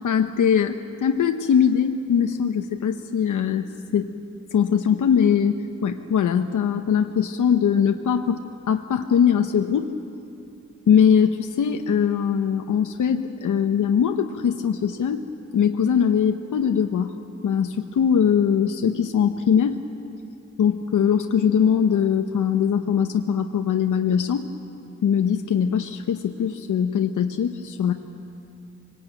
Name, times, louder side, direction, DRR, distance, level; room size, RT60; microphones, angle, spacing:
voice 1, 0.0-3.7 3.9-4.1 4.5-5.5 5.8-8.4 8.7-9.9 10.9-15.2 15.5-17.1 17.4-19.8 20.6-24.5 25.0-27.9, left 7 dB, 85° left, 6 dB, 0.9 m, -21 dB
24.0 x 19.5 x 9.1 m, 2.7 s
wide cardioid pair, 165°, 30 cm